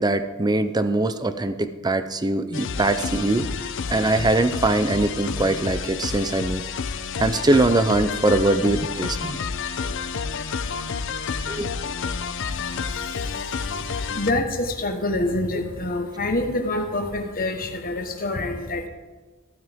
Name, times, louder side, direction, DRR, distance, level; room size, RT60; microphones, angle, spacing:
voice 1, 0.0-3.5 3.9-6.6 7.2-9.4 11.5-11.7, right 2 dB, 20° right, 10 dB, 0.5 m, -22 dB
sound 1, 2.5-14.3, left 5 dB, 60° left, 0.6 m, -29 dB
voice 2, 12.4-18.9, left 2 dB, 40° left, 4 dB, 1.3 m, -27 dB
15.0 x 9.5 x 3.6 m, 1.3 s
head